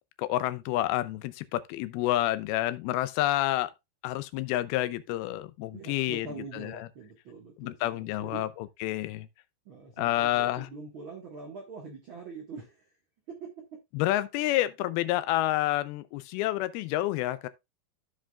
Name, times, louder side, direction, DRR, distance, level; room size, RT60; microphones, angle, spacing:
voice 1, 0.2-3.7 4.0-6.3 6.5-6.9 7.6-9.3 10.0-10.7 13.9-17.5, left 15 dB, 85° left, 2.5 m, -29 dB
voice 2, 5.7-8.4 9.6-12.9, right 4 dB, 55° right, 1.4 m, -44 dB
15.0 x 5.0 x 2.3 m
omnidirectional pair, 4.4 m